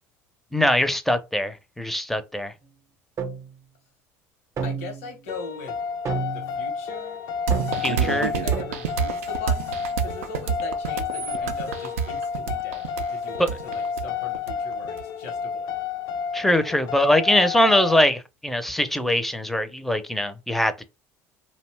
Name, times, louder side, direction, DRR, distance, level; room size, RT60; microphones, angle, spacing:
voice 1, 0.5-2.5 7.8-8.3 13.4-13.5 16.3-20.8, left 1 dB, 5° left, 0.5 m, -22 dB
sound 1, 3.2-3.5 4.6-5.2 6.1-6.6 7.5-8.0 8.5-8.8, right 5 dB, 40° right, 0.6 m, -31 dB
voice 2, 4.6-5.8 6.3-7.2 8.0-15.7, left 3 dB, 85° left, 0.8 m, -40 dB
sound 2, 5.3-18.1, left 7 dB, 60° left, 0.4 m, -31 dB
sound 3, 7.5-15.0, right 7 dB, 90° right, 0.4 m, -28 dB
2.6 x 2.1 x 3.2 m
hypercardioid pair, 80°, 7 cm